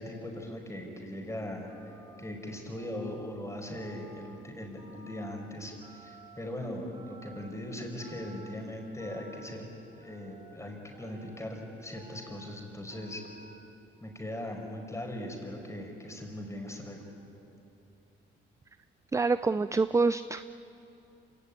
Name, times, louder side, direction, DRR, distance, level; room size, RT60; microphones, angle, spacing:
voice 1, 0.0-1.7 2.2-9.6 9.9-13.2 14.0-17.0, left 1 dB, 15° left, 2 dB, 5.3 m, -39 dB
Telephone, 1.7-2.1 2.7-3.3 3.7-4.4 4.8-5.3 5.8-6.4 6.9-7.5 8.0-8.5 9.0-9.5 10.0-10.5 10.9-11.5 11.9-12.5 12.9-13.5, right 2 dB, 35° right, 5.7 m, -54 dB
voice 2, 19.1-20.5, right 4 dB, 15° right, 13 dB, 0.5 m, -26 dB
26.5 x 17.0 x 9.8 m, 2.8 s
cardioid pair, 90°, 20 cm